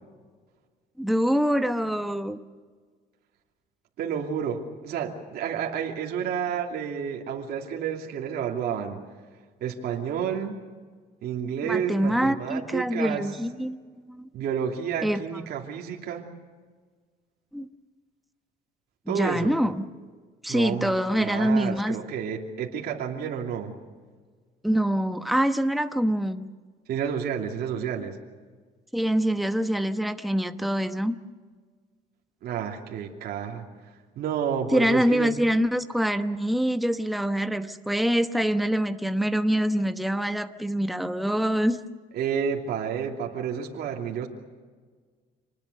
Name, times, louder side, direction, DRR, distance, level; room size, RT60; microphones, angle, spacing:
voice 1, 1.0-2.4 11.7-14.3 15.0-15.2 17.5-17.7 19.1-19.9 20.4-22.0 24.6-26.5 28.9-31.2 34.7-41.8, equal, ahead, 8 dB, 1.1 m, -25 dB
voice 2, 4.0-9.0 9.6-10.6 11.2-13.2 14.3-16.3 19.1-19.5 20.5-23.7 26.9-28.2 32.4-33.6 34.2-35.4 42.1-44.3, right 7 dB, 70° right, 0 dB, 2.9 m, -30 dB
27.0 x 20.0 x 6.8 m, 1.5 s
cardioid pair, 110°, 17 cm